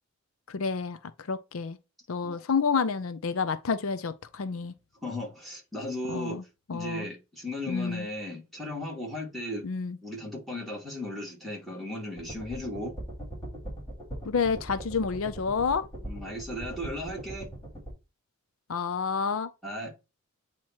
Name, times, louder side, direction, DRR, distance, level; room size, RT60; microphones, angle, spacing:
voice 1, 0.5-1.8 2.1-4.7 6.1-6.4 6.7-7.1 7.7-8.1 9.6-10.0 14.3-15.9 18.7-19.5, left 5 dB, 85° left, 0.6 m, -29 dB
voice 2, 5.0-6.3 6.7-9.7 10.0-12.9 16.0-17.5 19.6-19.9, left 1 dB, ahead, 2.5 m, -36 dB
sound 1, 12.2-17.9, right 1 dB, 15° left, 3.4 m, -40 dB
8.6 x 3.0 x 4.5 m
head